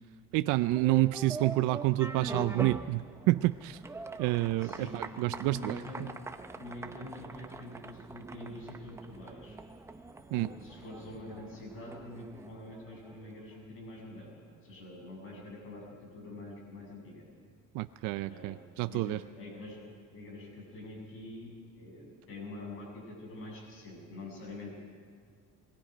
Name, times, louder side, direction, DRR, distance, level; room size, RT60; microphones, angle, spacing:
voice 1, 0.3-3.8 4.2-5.8 10.3-10.5 17.7-19.2, right 18 dB, 75° right, 12 dB, 0.5 m, -29 dB
sound 1, 0.6-13.4, right 3 dB, 10° right, 0.6 m, -43 dB
voice 2, 4.6-5.0 5.3-6.0 6.5-9.6 10.3-17.2 18.2-18.6 18.9-19.9 20.1-24.9, left 2 dB, 40° left, -1 dB, 7.4 m, -45 dB
27.0 x 21.0 x 5.1 m, 2.2 s
cardioid pair, 180°, 31 cm